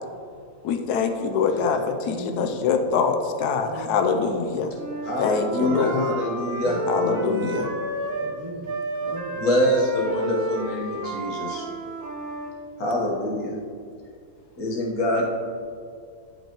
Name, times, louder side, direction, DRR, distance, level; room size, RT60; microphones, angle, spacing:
voice 1, 0.6-4.7 5.2-6.1 6.9-7.7, left 5 dB, 85° left, 6 dB, 1.1 m, -24 dB
voice 2, 2.0-2.7 3.6-4.2 6.6-6.8 7.8-8.7 9.0-9.4, right 1 dB, 35° right, -3 dB, 0.5 m, -38 dB
Wind instrument woodwind instrument, 4.7-8.4 8.6-12.5, right 2 dB, 65° right, 1.4 m, -31 dB
voice 3, 5.0-7.6 9.4-11.6 12.8-13.5 14.6-15.2, equal, 70° left, -2 dB, 1.7 m, -25 dB
10.5 x 5.3 x 2.9 m, 2.2 s
omnidirectional pair, 1.7 m